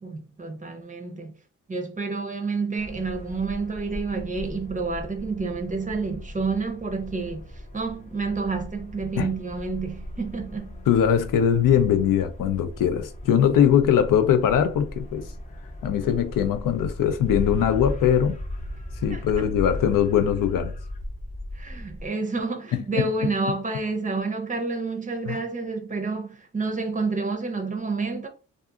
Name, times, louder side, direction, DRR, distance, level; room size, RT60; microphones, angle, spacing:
voice 1, 0.0-1.3 1.7-7.5 7.7-10.7 19.1-19.5 21.5-28.3, right 4 dB, 25° right, 0.5 m, -29 dB
sound 1, 2.8-22.1, left 1 dB, 25° left, 0.4 m, -37 dB
voice 2, 10.9-15.3 15.8-18.4 19.0-20.7 22.7-23.0 25.3-25.4, left 9 dB, 85° left, 0.5 m, -21 dB
2.6 x 2.4 x 2.3 m
cardioid pair, 95°, 32 cm